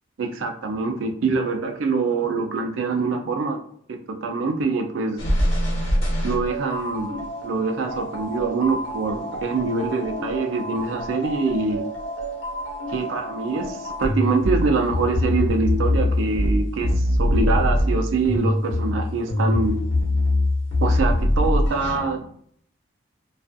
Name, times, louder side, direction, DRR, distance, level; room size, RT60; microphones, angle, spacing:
voice 1, 0.2-3.6 3.9-5.2 6.2-11.8 12.9-19.8 20.8-22.3, right 4 dB, 85° right, 4 dB, 0.4 m, -24 dB
sound 1, 5.2-22.0, left 1 dB, 80° left, 0.9 m, -24 dB
2.5 x 2.3 x 2.4 m, 0.65 s
head